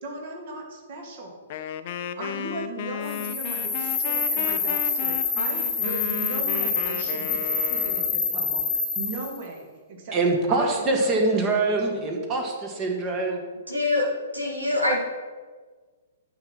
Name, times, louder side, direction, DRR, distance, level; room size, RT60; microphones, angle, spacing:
voice 1, 0.0-1.3 2.2-10.2 10.5-11.6 11.9-12.0, right 3 dB, 45° right, 1 dB, 2.5 m, -37 dB
Wind instrument woodwind instrument, 1.5-8.2, left 9 dB, 40° left, 0.6 m, -34 dB
sound 1, 3.1-9.4, left 5 dB, 15° left, 1.4 m, -27 dB
voice 2, 10.1-13.4, right 2 dB, 25° right, 1 dB, 1.6 m, -24 dB
voice 3, 13.7-14.1 14.3-15.0, left 2 dB, 85° right, -3 dB, 2.6 m, -24 dB
10.5 x 6.0 x 6.2 m, 1.5 s
figure-of-eight pair, 115°, 0 cm